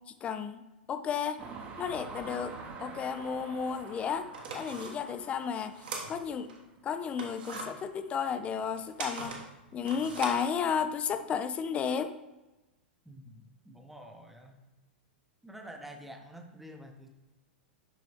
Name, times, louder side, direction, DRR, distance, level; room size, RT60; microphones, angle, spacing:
voice 1, 0.1-1.4 1.8-2.5 2.8-5.8 6.1-6.5 6.8-9.4 9.7-12.1, left 7 dB, 20° left, 10 dB, 0.4 m, -33 dB
sound 1, 1.4-6.4, right 4 dB, 25° right, 1.0 m, -46 dB
sound 2, 3.7-3.8 4.2-6.6 7.0-11.1, right 4 dB, 60° right, 1.4 m, -42 dB
voice 2, 13.0-14.6 15.4-17.1, equal, 5° right, 3 dB, 0.9 m, -48 dB
11.0 x 4.0 x 3.2 m, 1.1 s
figure-of-eight pair, 100°, 6 cm